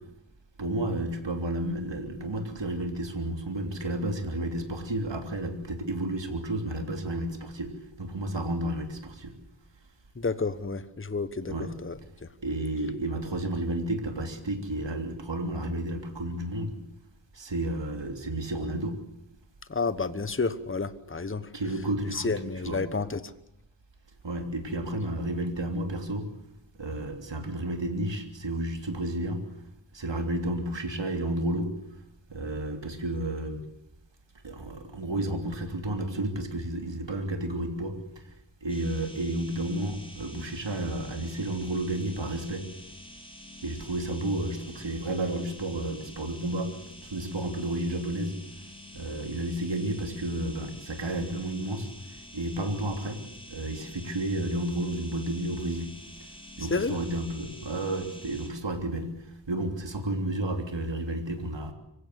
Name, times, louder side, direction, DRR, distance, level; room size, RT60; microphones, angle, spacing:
voice 1, 0.6-7.7 8.0-9.4 11.5-11.7 12.4-16.7 17.3-19.0 21.5-22.8 24.2-26.3 26.8-29.4 29.9-31.7 32.3-33.6 34.4-38.3 38.6-42.7 43.6-48.3 48.9-53.2 53.5-55.9 56.6-61.7, right 1 dB, 65° right, 5 dB, 3.3 m, -31 dB
voice 2, 10.2-11.5 11.8-12.0 19.7-21.4 22.1-23.2 56.7-56.9, left 4 dB, 25° left, 13 dB, 1.2 m, -30 dB
sound 1, 38.7-58.5, left 1 dB, 10° left, 7.7 m, -48 dB
25.0 x 16.5 x 8.1 m, 0.83 s
wide cardioid pair, 80°, 47 cm